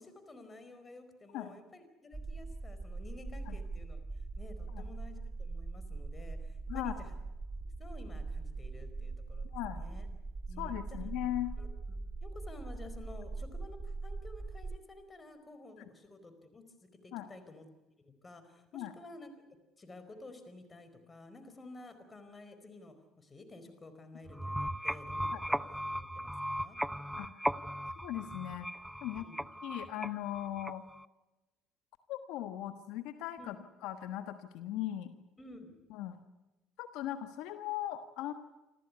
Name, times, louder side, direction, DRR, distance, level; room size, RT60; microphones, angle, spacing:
voice 1, 0.0-4.0 4.4-7.1 7.8-10.1 10.5-10.8 11.6-17.6 18.0-19.3 19.8-25.6 25.9-26.8 29.1-29.4 33.4-33.5 35.4-35.7, left 2 dB, 25° left, 9 dB, 4.7 m, -52 dB
sound 1, 2.1-14.8, right 3 dB, 25° right, 1.1 m, -41 dB
voice 2, 9.5-9.8 10.6-11.5 17.1-17.3 18.7-18.9 25.3-25.4 27.2-27.4 28.0-28.7 29.0-29.3 29.6-30.8 32.1-33.6 33.8-35.1 35.9-36.2 36.8-38.3, left 13 dB, 80° left, 9 dB, 1.4 m, -38 dB
sound 2, 24.3-31.1, equal, ahead, 0.7 m, -37 dB
27.0 x 14.0 x 9.6 m, 1.0 s
supercardioid pair, 85°, 0 cm